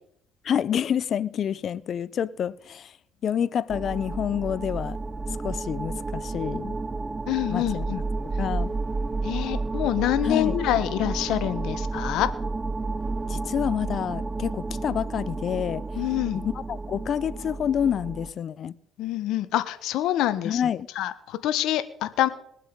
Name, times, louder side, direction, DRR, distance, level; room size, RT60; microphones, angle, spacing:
voice 1, 0.4-3.0 3.2-5.0 5.4-6.8 7.5-7.9 8.4-8.7 10.2-10.6 13.3-15.8 16.3-18.8 20.4-20.9, left 9 dB, 55° left, 0.6 m, -28 dB
sound 1, 3.7-18.3, right 3 dB, 20° right, 0.6 m, -31 dB
voice 2, 7.3-8.0 9.2-12.3 15.9-16.4 19.0-20.6 21.0-22.3, left 13 dB, 75° left, 1.2 m, -26 dB
21.0 x 7.5 x 5.3 m
supercardioid pair, 85°, 0 cm